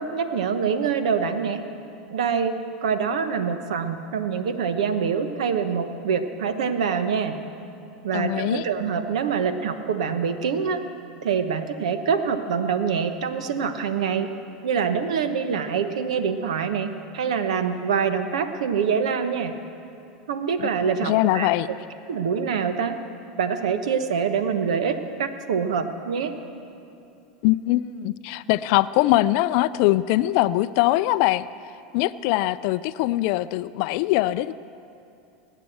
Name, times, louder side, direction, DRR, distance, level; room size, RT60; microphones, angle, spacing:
voice 1, 0.0-1.6 2.1-7.4 8.0-10.8 11.2-14.3 14.6-19.5 20.3-21.5 22.1-23.0 23.4-26.3, right 6 dB, 80° right, 9 dB, 1.0 m, -25 dB
voice 2, 8.1-8.6 20.6-20.7 21.0-21.7 27.4-31.5 31.9-34.5, left 17 dB, 60° left, 13 dB, 0.4 m, -22 dB
19.0 x 8.2 x 7.8 m, 2.7 s
hypercardioid pair, 100°, 3 cm